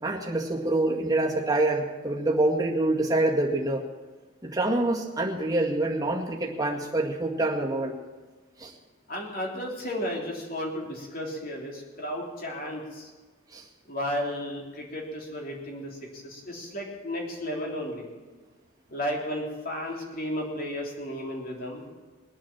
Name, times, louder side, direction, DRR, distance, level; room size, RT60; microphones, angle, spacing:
voice 1, 0.0-3.8 4.4-7.9 8.6-8.7 13.5-13.6, right 2 dB, 15° right, -2 dB, 1.9 m, -26 dB
voice 2, 9.1-13.1 13.9-18.1 18.9-21.8, equal, 40° left, -1 dB, 3.3 m, -33 dB
21.0 x 8.8 x 7.4 m, 1.3 s
head